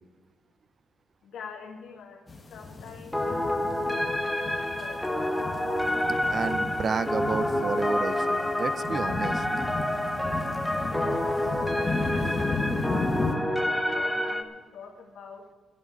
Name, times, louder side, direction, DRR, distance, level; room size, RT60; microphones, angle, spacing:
voice 1, 1.2-2.2 2.5-5.3 10.9-15.5, left 6 dB, 65° left, -1 dB, 1.8 m, -45 dB
sound 1, 2.3-13.3, left 3 dB, 20° left, 1.6 m, -34 dB
sound 2, 3.1-14.4, left 1 dB, 5° left, 0.9 m, -28 dB
voice 2, 6.3-9.5, right 5 dB, 35° right, 15 dB, 0.4 m, -31 dB
13.0 x 8.6 x 8.0 m, 1.4 s
cardioid pair, 160°, 0 cm